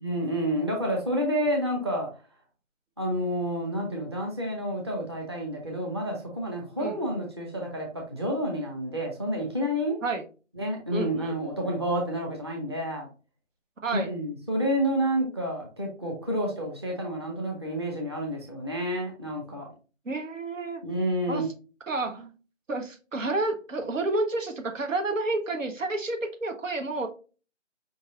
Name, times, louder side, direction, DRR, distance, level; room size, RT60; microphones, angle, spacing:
voice 1, 0.0-2.1 3.0-10.0 10.6-13.1 13.9-19.7 20.8-21.4, equal, 20° right, 0 dB, 0.7 m, -29 dB
voice 2, 10.9-11.4 13.8-14.1 20.0-20.8 21.3-21.4 21.9-22.3 22.7-27.1, right 2 dB, 85° right, 6 dB, 1.3 m, -30 dB
5.2 x 3.9 x 2.4 m, 0.35 s
hypercardioid pair, 170°, 38 cm